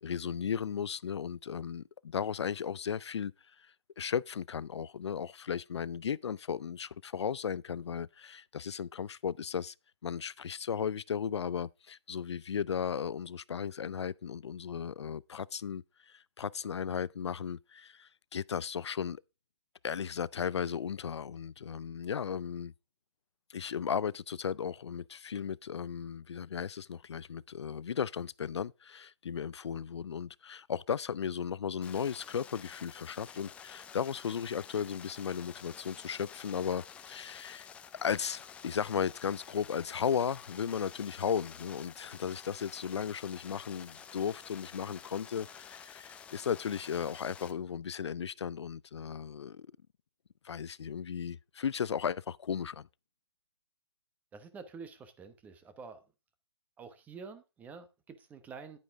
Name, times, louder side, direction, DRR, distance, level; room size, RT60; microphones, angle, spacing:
voice 1, 0.0-3.3 3.6-9.7 10.0-19.2 19.8-22.7 23.5-37.7 38.0-49.7 50.4-52.9, left 7 dB, 70° left, 0.4 m, -35 dB
sound 1, 31.8-47.5, left 7 dB, 10° left, 0.5 m, -50 dB
voice 2, 54.3-56.0 56.8-58.8, right 5 dB, 10° right, 1.0 m, -48 dB
10.5 x 9.3 x 3.6 m
hypercardioid pair, 145°, 15 cm